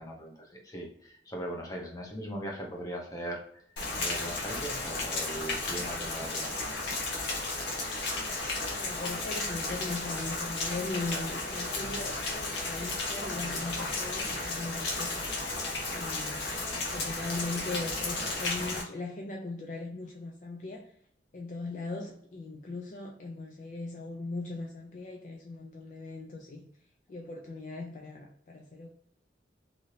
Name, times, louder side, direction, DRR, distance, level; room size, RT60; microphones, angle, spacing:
voice 1, 0.0-3.4 4.0-6.6, right 1 dB, 20° left, 0.7 m, -39 dB
Rain, 3.8-18.8, left 2 dB, 85° left, 0.8 m, -34 dB
voice 2, 8.6-15.2 15.9-16.5 16.7-20.9 21.3-26.7 27.1-28.9, left 3 dB, 45° left, 0.4 m, -39 dB
2.7 x 2.6 x 3.1 m
head